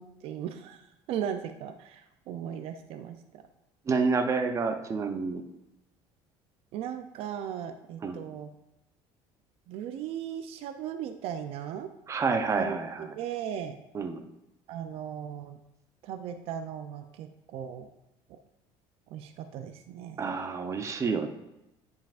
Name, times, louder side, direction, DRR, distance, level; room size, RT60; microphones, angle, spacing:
voice 1, 0.0-3.4 6.7-8.5 9.7-11.9 12.6-13.8 14.7-15.6 16.0-17.9 18.3-18.4 19.1-20.2, right 9 dB, 65° right, 7 dB, 0.5 m, -37 dB
voice 2, 3.9-5.4 8.0-8.2 12.1-13.1 13.9-14.2 20.2-21.3, right 4 dB, 30° right, 6 dB, 0.7 m, -28 dB
10.0 x 5.6 x 2.5 m, 0.93 s
cardioid pair, 120°, 11 cm